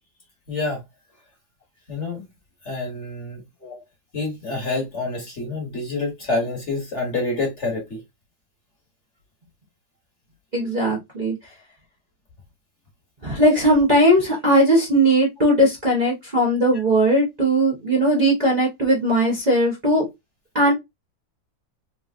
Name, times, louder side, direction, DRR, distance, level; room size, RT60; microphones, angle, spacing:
voice 1, 0.5-0.8 1.9-2.3 2.6-3.4 4.1-8.0, left 2 dB, 45° left, 1.5 m, -27 dB
voice 2, 10.5-11.3 13.2-20.0 20.5-20.7, right 1 dB, 30° right, 1.0 m, -18 dB
3.4 x 3.1 x 2.4 m
omnidirectional pair, 1.9 m